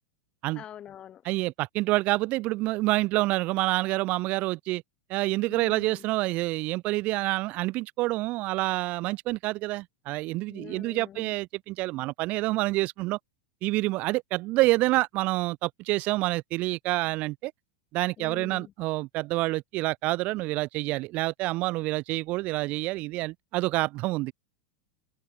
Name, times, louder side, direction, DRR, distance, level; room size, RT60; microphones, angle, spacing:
voice 1, 0.5-1.2 5.5-6.0 10.5-11.3 18.2-18.7, left 10 dB, 25° left, 1.4 m, -44 dB
voice 2, 1.2-4.8 5.1-13.2 13.6-17.5 17.9-24.3, right 20 dB, 35° right, 0.7 m, -27 dB
supercardioid pair, 155°, 4 cm